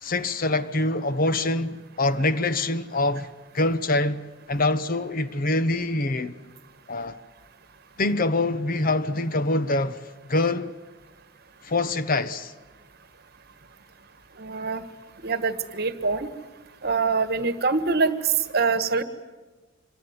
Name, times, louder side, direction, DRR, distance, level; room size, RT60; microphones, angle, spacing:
voice 1, 0.0-4.2 4.5-6.3 6.9-7.2 8.0-10.7 11.6-12.5, left 2 dB, 45° left, 1.1 m, -25 dB
voice 2, 14.4-14.8 15.2-16.3 16.8-19.0, right 4 dB, 55° right, 1.6 m, -24 dB
27.0 x 23.0 x 9.6 m
head